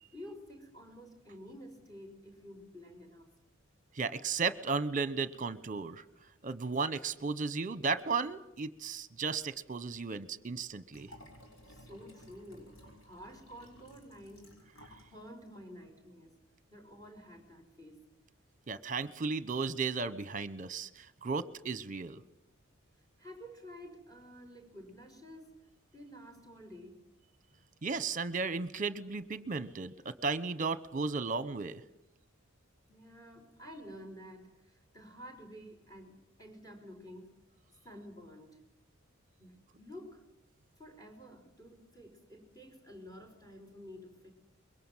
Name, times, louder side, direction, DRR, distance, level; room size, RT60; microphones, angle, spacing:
voice 1, 0.1-3.3 11.6-14.7 15.0-16.3 16.7-18.0 23.2-25.5 25.9-27.0 32.9-37.3 37.8-38.7 39.4-40.3 40.8-44.3, equal, 15° left, 5 dB, 5.3 m, -51 dB
voice 2, 3.9-6.0 6.4-11.1 18.7-22.2 27.8-31.8, right 4 dB, 40° right, 15 dB, 1.0 m, -35 dB
Liquid, 10.9-15.1 15.5-15.6, equal, 80° left, 6.1 m, -56 dB
24.0 x 22.5 x 7.4 m, 0.83 s
head